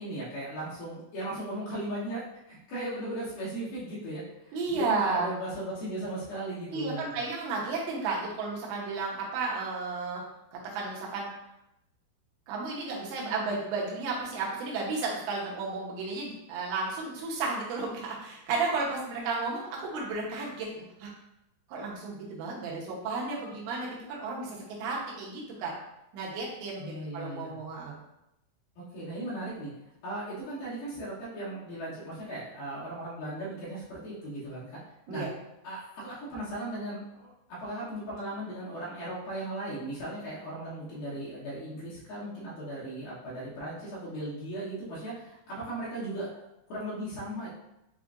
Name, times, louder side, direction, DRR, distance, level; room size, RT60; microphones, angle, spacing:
voice 1, 0.0-7.1 26.8-27.6 28.8-29.7 30.0-34.8 35.1-35.3 35.6-47.5, right 1 dB, 70° left, -9 dB, 2.2 m, -37 dB
voice 2, 4.5-5.3 6.7-10.2 10.5-11.3 12.5-21.1 21.7-25.7 26.1-28.0 35.1-35.3, right 3 dB, 80° right, -3 dB, 3.1 m, -33 dB
7.2 x 2.4 x 2.5 m, 0.86 s
omnidirectional pair, 5.3 m